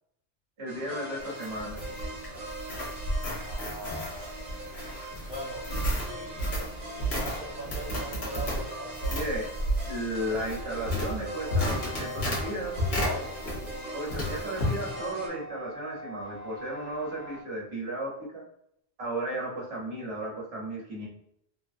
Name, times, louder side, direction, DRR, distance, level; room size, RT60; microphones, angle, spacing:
voice 1, 0.6-2.1 9.1-9.5 9.9-12.7 13.9-18.4 19.0-21.1, right 1 dB, 75° right, -4 dB, 1.3 m, -34 dB
sound 1, 0.7-15.3, right 1 dB, 45° right, 1.0 m, -40 dB
sound 2, 1.2-13.8 14.1-14.8, equal, 70° left, 1.2 m, -32 dB
voice 2, 3.3-4.3 5.0-5.6 5.9-9.2 13.0-13.4, equal, 5° right, -5 dB, 0.6 m, -41 dB
sound 3, 13.9-17.4, right 1 dB, 50° left, 0.5 m, -46 dB
3.1 x 2.2 x 2.5 m, 0.75 s
omnidirectional pair, 1.1 m